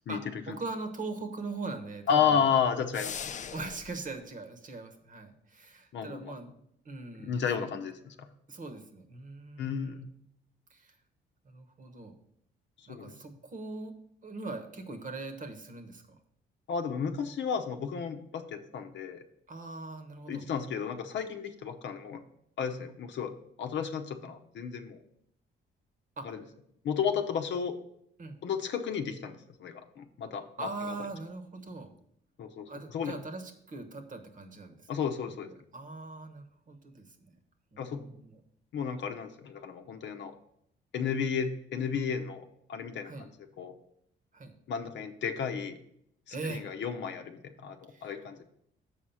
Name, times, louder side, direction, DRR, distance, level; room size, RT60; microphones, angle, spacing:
voice 1, 0.1-2.5 3.5-6.5 6.8-7.7 8.5-10.1 10.7-11.0 11.4-12.1 12.9-14.0 14.2-16.2 19.5-20.5 26.2-26.4 28.2-28.4 30.6-31.9 32.7-34.9 35.4-37.4 37.7-38.4 43.0-43.3 44.3-44.5 46.3-46.7 47.9-48.2, right 3 dB, 40° right, 7 dB, 1.1 m, -41 dB
voice 2, 2.1-3.2 5.9-6.3 7.2-8.3 9.6-10.1 12.8-13.1 16.7-19.2 20.3-22.2 22.6-23.3 23.6-25.0 26.2-26.4 26.8-27.8 28.4-30.7 32.4-33.2 34.9-35.5 37.8-38.0 38.7-40.3 40.9-43.3 43.6-43.8 44.7-45.8 46.3-48.4, left 7 dB, 65° left, 7 dB, 0.8 m, -32 dB
sound 1, 2.9-3.9, left 7 dB, 40° left, 0.4 m, -39 dB
7.1 x 4.8 x 5.6 m, 0.73 s
cardioid pair, 90°, 20 cm